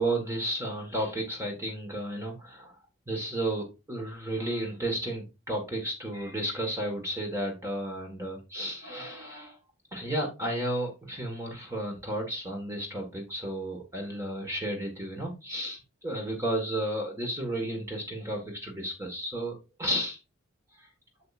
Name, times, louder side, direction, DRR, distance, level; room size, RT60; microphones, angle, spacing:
voice 1, 0.0-2.7 3.1-9.6 9.9-20.2 20.8-20.9, right 1 dB, 15° right, 1 dB, 1.5 m, -33 dB
7.6 x 7.2 x 2.5 m, 0.26 s
head